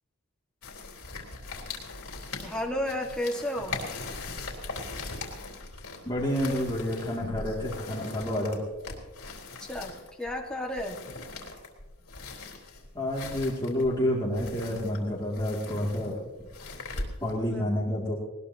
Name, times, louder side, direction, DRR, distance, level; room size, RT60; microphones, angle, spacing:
sound 1, 0.6-17.5, left 3 dB, 75° left, 3.6 m, -40 dB
voice 1, 2.4-3.8 9.6-11.0 17.5-17.7, left 1 dB, 5° left, 0 dB, 1.7 m, -32 dB
voice 2, 6.0-8.6 12.9-16.2 17.2-18.2, left 1 dB, 20° left, -5 dB, 2.5 m, -29 dB
20.5 x 20.0 x 2.9 m, 1.2 s
head